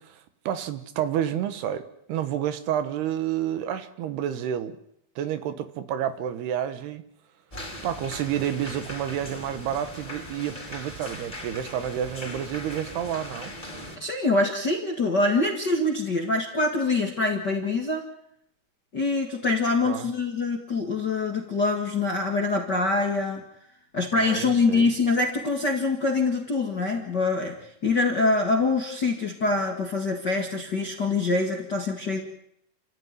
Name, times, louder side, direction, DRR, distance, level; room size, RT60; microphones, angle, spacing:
voice 1, 0.0-4.8 5.2-7.0 7.8-13.5 19.8-20.1 24.1-25.0, right 10 dB, 75° right, 10 dB, 3.2 m, -30 dB
sound 1, 7.5-14.0, left 1 dB, 10° left, 4.3 m, -39 dB
voice 2, 14.0-18.0 18.9-23.4 23.9-27.6 27.8-32.2, left 3 dB, 40° left, 2 dB, 1.6 m, -24 dB
29.5 x 14.5 x 9.5 m, 0.75 s
omnidirectional pair, 4.9 m